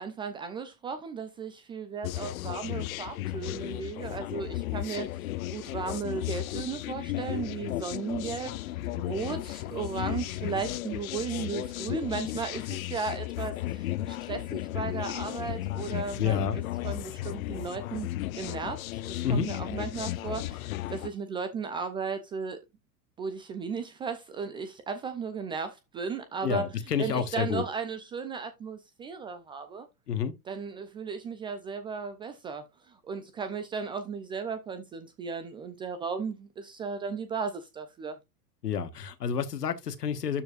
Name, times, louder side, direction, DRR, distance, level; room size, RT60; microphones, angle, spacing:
voice 1, 0.0-5.1 5.5-8.5 9.0-16.5 16.8-18.1 18.3-22.6 23.2-26.7 27.0-29.9 30.5-38.2, right 5 dB, 10° right, 0.3 m, -35 dB
sound 1, 2.0-21.1, left 15 dB, 60° left, 0.7 m, -35 dB
voice 2, 16.2-16.6 19.2-19.5 26.4-27.6 30.1-30.3 38.6-40.4, left 7 dB, 75° left, 1.4 m, -29 dB
12.5 x 4.5 x 2.4 m
figure-of-eight pair, 90°, 48 cm